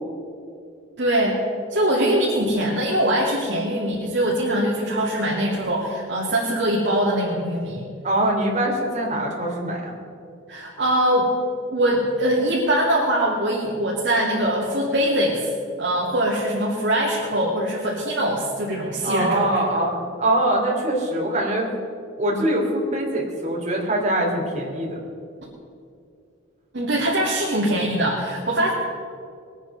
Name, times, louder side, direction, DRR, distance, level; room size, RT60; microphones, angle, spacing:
voice 1, 1.0-1.4 1.7-7.8 10.5-11.3 11.7-15.5 15.8-19.6 26.7-28.7, right 1 dB, 60° right, -6 dB, 2.6 m, -22 dB
voice 2, 8.0-9.9 19.0-21.7 22.2-25.0, right 1 dB, 35° right, -2 dB, 3.2 m, -23 dB
21.5 x 9.2 x 5.5 m, 2.4 s
head